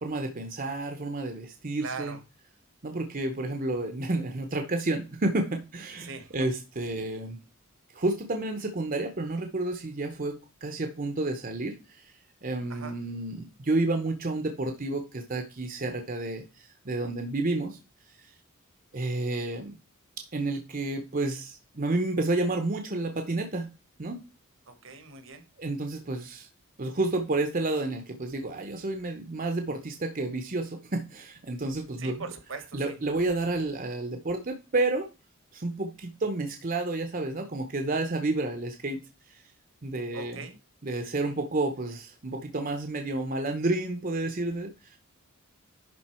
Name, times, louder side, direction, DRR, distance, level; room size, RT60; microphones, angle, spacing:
voice 1, 0.0-2.2 2.8-7.4 7.9-12.1 12.4-17.8 18.1-18.2 18.9-19.7 20.3-23.7 24.0-24.2 25.6-26.5 26.8-32.2 32.7-35.1 35.5-39.0 39.3-39.4 39.8-40.4 40.8-45.0, right 2 dB, 40° right, 6 dB, 0.8 m, -30 dB
voice 2, 1.8-2.2 6.0-6.5 12.7-12.9 24.7-25.4 32.0-33.0 40.1-40.6, right 4 dB, 65° right, 10 dB, 1.2 m, -40 dB
11.0 x 3.9 x 4.4 m, 0.30 s
head